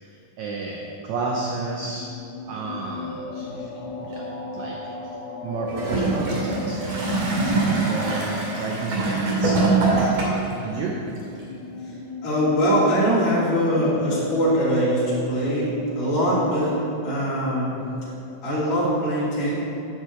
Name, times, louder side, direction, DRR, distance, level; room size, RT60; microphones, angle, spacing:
voice 1, 0.0-2.1 2.5-3.5 4.0-5.1 5.4-7.5 7.8-11.0, right 3 dB, 70° right, -1 dB, 1.8 m, -32 dB
sound 1, 1.1-18.4, left 3 dB, 70° left, 2.3 m, -36 dB
voice 2, 3.4-3.7 11.8-11.9 12.2-17.8 18.4-19.6, equal, 25° left, -10 dB, 2.8 m, -22 dB
Gurgling / Toilet flush, 5.7-10.6 11.4-11.5, right 3 dB, 85° right, 4.1 m, -23 dB
8.1 x 6.2 x 8.0 m, 2.8 s
omnidirectional pair, 4.0 m